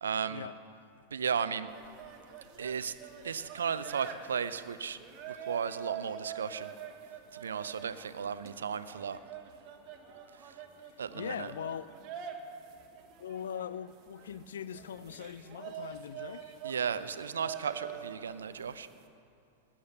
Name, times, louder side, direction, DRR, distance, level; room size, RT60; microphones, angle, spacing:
voice 1, 0.0-0.5 1.1-1.7 2.6-2.9 3.2-5.0 5.3-6.7 7.3-9.2 10.4-10.5 11.0-11.5 16.6-18.9, right 7 dB, 70° right, 0.6 m, -35 dB
sound 1, 1.7-19.1, right 8 dB, 35° right, 1.5 m, -46 dB
voice 2, 11.1-11.9 13.2-16.6, left 8 dB, 65° left, 0.4 m, -41 dB
19.5 x 8.6 x 6.8 m
figure-of-eight pair, 90°, 0 cm